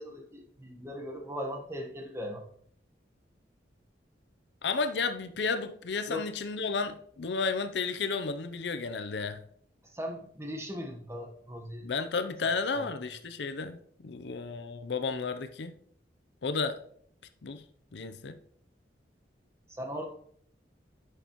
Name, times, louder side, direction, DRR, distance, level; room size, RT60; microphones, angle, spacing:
voice 1, 0.0-2.4 6.1-6.3 9.8-11.9 12.7-12.9 19.7-20.1, equal, 15° right, 1.2 m, -39 dB
voice 2, 4.6-9.4 11.8-15.7 16.4-16.8 17.4-17.6 17.9-18.4, left 4 dB, 75° left, 0.6 m, -32 dB
10.5 x 6.4 x 3.0 m
head